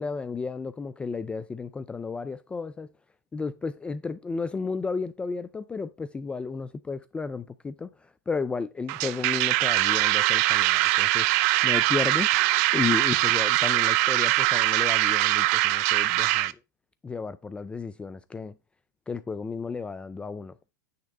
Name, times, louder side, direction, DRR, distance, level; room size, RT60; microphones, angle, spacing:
voice 1, 0.0-2.9 3.3-11.3 11.6-16.5 17.0-18.6 19.1-20.6, left 4 dB, 10° left, 0.4 m, -33 dB
sound 1, 8.9-16.5, right 17 dB, 50° right, 0.5 m, -22 dB
9.4 x 3.2 x 6.5 m
hypercardioid pair, 115°, 10 cm